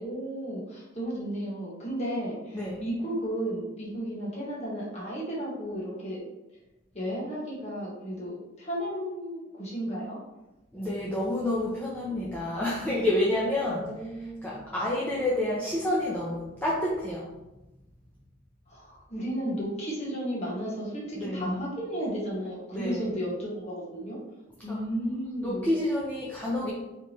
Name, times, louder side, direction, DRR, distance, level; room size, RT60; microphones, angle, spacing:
voice 1, 0.0-6.2 6.9-10.2 13.7-14.6 18.7-24.2 24.6-25.7, equal, 35° left, -5 dB, 1.5 m, -34 dB
voice 2, 10.7-17.3 21.1-21.6 22.7-23.2 24.7-24.8 25.4-26.7, left 1 dB, 10° left, -7 dB, 0.6 m, -29 dB
4.7 x 3.4 x 3.1 m, 0.98 s
head